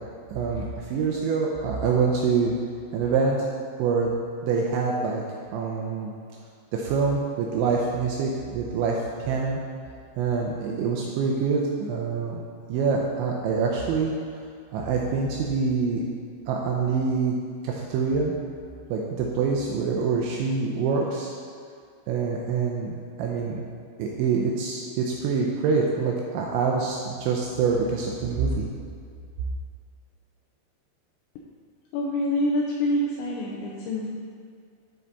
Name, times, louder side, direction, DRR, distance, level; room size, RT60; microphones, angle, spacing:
voice 1, 0.3-2.5 2.9-3.4 3.8-4.1 4.4-5.2 5.5-6.1 6.7-9.0 9.3-9.6 10.2-12.4 12.7-14.4 14.7-16.1 16.5-17.4 17.6-18.3 18.9-21.3 22.1-23.6 24.0-28.7, right 5 dB, 85° right, -1 dB, 2.7 m, -25 dB
voice 2, 31.9-34.1, left 1 dB, 80° left, -2 dB, 2.6 m, -26 dB
12.5 x 4.5 x 4.1 m, 2.3 s
omnidirectional pair, 5.9 m